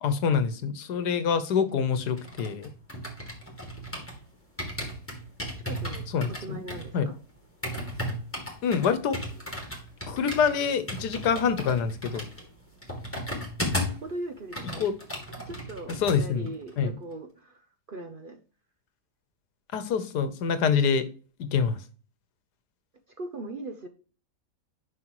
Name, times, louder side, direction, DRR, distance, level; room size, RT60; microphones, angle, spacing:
voice 1, 0.0-2.7 6.1-6.6 6.9-7.1 8.6-9.2 10.1-12.2 14.8-14.9 16.0-16.5 16.8-16.9 19.7-21.1 21.4-21.8, left 6 dB, 85° left, 1.5 m, -26 dB
sound 1, 1.9-4.2 4.6-14.1 14.4-16.2 16.5-16.7, left 1 dB, 10° left, 2.5 m, -35 dB
voice 2, 5.6-7.2 14.0-14.9 15.4-18.4 23.2-23.9, right 2 dB, 45° right, 0.7 m, -39 dB
9.7 x 5.8 x 3.1 m
omnidirectional pair, 1.7 m